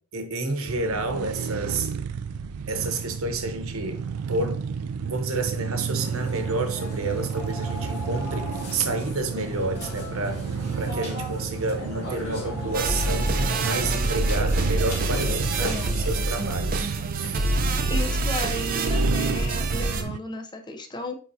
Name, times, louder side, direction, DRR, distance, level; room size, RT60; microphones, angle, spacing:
voice 1, 0.1-1.9 2.7-4.6 5.0-10.4 10.8-13.4 13.6-17.4, right 2 dB, 65° right, 1.1 m, -30 dB
sound 1, 0.7-20.2, right 6 dB, 80° right, 0.4 m, -32 dB
Burping eructation, 5.9-16.5, left 1 dB, 45° left, 2.3 m, -36 dB
sound 2, 12.7-20.0, right 2 dB, 40° right, 0.6 m, -26 dB
voice 2, 15.6-16.0 17.9-21.2, left 1 dB, 20° left, 0.7 m, -34 dB
9.0 x 3.7 x 2.8 m
head